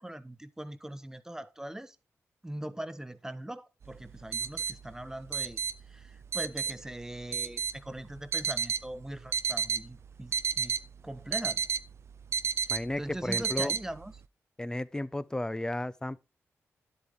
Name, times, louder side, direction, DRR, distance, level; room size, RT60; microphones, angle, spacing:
voice 1, 0.0-2.0 2.4-5.6 5.9-10.8 11.0-11.7 12.7-14.1, right 1 dB, 10° right, 1.0 m, -41 dB
sound 1, 3.8-14.2, right 6 dB, 60° right, 0.4 m, -33 dB
voice 2, 12.7-13.7 14.6-16.2, left 1 dB, 15° left, 0.6 m, -33 dB
10.5 x 8.0 x 3.6 m
cardioid pair, 75°, 5 cm